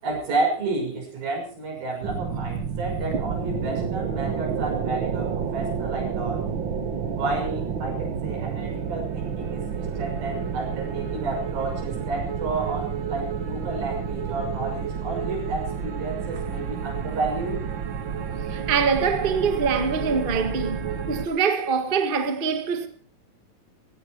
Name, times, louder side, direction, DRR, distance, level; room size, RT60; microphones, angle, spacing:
voice 1, 0.0-6.4 7.1-17.6, right 3 dB, 90° right, 8.1 m, -31 dB
sound 1, 2.0-21.3, right 7 dB, 50° right, 1.5 m, -30 dB
voice 2, 18.5-22.9, right 5 dB, 30° right, 0.9 m, -24 dB
17.0 x 16.5 x 4.6 m
omnidirectional pair, 4.1 m